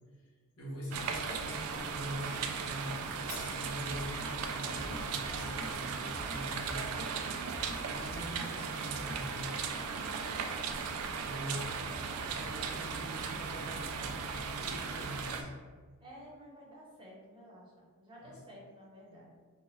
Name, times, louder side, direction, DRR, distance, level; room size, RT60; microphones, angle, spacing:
voice 1, 0.6-3.0 3.3-7.0 7.7-9.6 11.2-11.8 12.2-15.5 18.2-18.4, equal, 90° left, -6 dB, 0.9 m, -43 dB
sound 1, 0.9-15.4, right 5 dB, 80° right, 0.3 m, -37 dB
Crash cymbal, 3.3-5.0, left 2 dB, 20° left, 1.0 m, -49 dB
sound 2, 3.9-4.4 4.7-5.8 6.1-7.2 7.5-8.6 8.9-9.3, left 1 dB, 50° left, 0.5 m, -47 dB
voice 2, 12.3-13.4 16.0-19.4, equal, 25° right, -4 dB, 0.7 m, -54 dB
2.7 x 2.3 x 3.0 m, 1.5 s
head